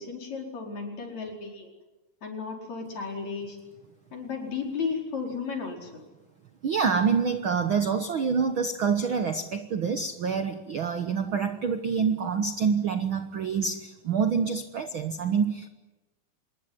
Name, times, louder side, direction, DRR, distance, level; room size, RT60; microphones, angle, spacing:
voice 1, 0.0-1.7 2.2-3.6 4.1-6.0, left 5 dB, 55° left, 1 dB, 6.0 m, -34 dB
voice 2, 6.6-15.7, right 6 dB, 60° right, 8 dB, 1.4 m, -26 dB
26.5 x 21.0 x 9.8 m, 1.1 s
omnidirectional pair, 3.7 m